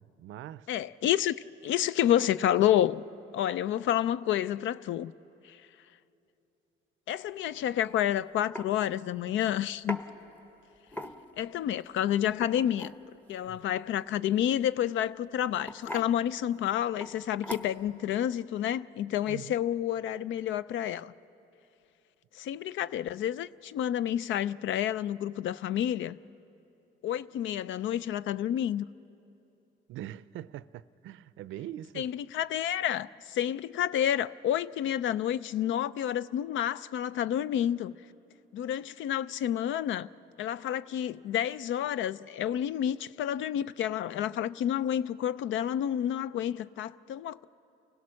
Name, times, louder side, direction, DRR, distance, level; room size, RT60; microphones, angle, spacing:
voice 1, 0.0-0.7 13.5-13.6 19.3-19.6 29.9-32.1, right 12 dB, 80° right, 0.5 m, -42 dB
voice 2, 0.7-1.4 1.6-3.0 3.3-5.1 5.4-5.6 7.1-10.0 11.4-12.9 13.3-21.1 22.4-26.2 27.0-28.8 32.0-37.9 38.5-40.1 40.4-47.5, left 11 dB, 75° left, 0.5 m, -29 dB
sound 1, 7.9-8.0 8.5-8.7 9.9-10.1 10.9-11.4 12.3-13.0 14.6-14.9 15.6-16.1 17.0-17.1 17.4-17.9, left 1 dB, 10° left, 1.0 m, -39 dB
29.5 x 16.5 x 6.4 m
cardioid pair, 90°, 20 cm